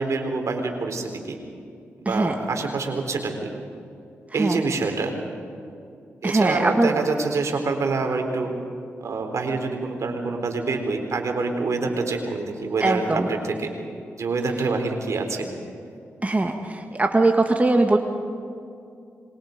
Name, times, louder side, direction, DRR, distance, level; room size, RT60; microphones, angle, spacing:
voice 1, 0.0-1.4 2.1-3.5 4.3-5.1 6.2-8.5 9.0-13.7 14.2-15.5, right 3 dB, 65° right, 4 dB, 3.8 m, -26 dB
voice 2, 4.3-4.6 6.2-7.0 12.8-13.3 16.2-18.0, right 2 dB, 25° right, 4 dB, 1.9 m, -21 dB
26.5 x 23.5 x 5.3 m, 2.4 s
supercardioid pair, 45°, 6 cm